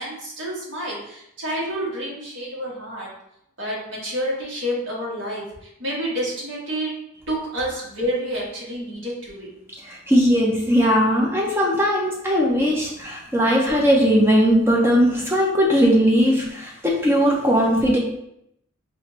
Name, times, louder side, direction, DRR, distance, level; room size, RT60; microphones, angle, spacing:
voice 1, 0.0-3.1 3.6-5.4 5.8-6.9 7.3-9.5, equal, 60° right, -5 dB, 1.4 m, -29 dB
voice 2, 9.8-18.0, equal, 10° right, -2 dB, 0.5 m, -19 dB
4.3 x 2.5 x 3.0 m, 0.78 s
head